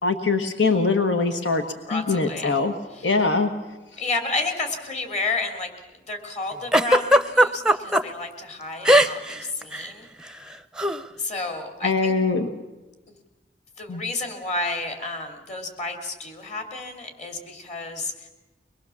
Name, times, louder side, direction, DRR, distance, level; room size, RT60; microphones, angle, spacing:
voice 1, 0.0-1.6 1.9-2.7 3.0-3.5 11.8-12.5 13.9-14.0, left 3 dB, 80° left, 6 dB, 1.4 m, -22 dB
voice 2, 1.8-2.6 2.9-3.1 4.0-5.7 6.1-10.1 11.1-12.1 13.1-13.2 13.8-18.3, left 3 dB, 40° left, 4 dB, 3.2 m, -31 dB
Giggle, 6.7-8.0 8.8-9.4 9.6-9.9 10.8-11.0, equal, 5° right, 0.7 m, -17 dB
24.0 x 21.0 x 7.2 m, 1.1 s
head